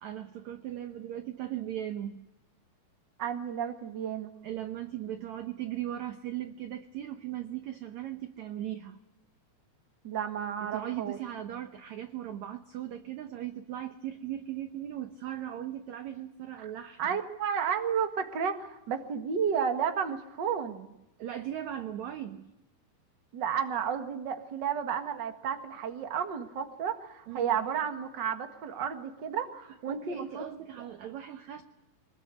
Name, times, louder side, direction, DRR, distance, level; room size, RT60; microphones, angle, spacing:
voice 1, 0.0-2.2 4.4-9.0 10.6-17.2 21.2-22.5 27.3-27.6 29.9-31.6, right 11 dB, 70° right, 8 dB, 1.8 m, -38 dB
voice 2, 3.2-4.3 10.0-11.2 17.0-20.9 23.3-30.4 30.8-30.9, right 7 dB, 40° right, 6 dB, 1.7 m, -32 dB
24.0 x 20.5 x 8.3 m, 0.92 s
omnidirectional pair, 4.3 m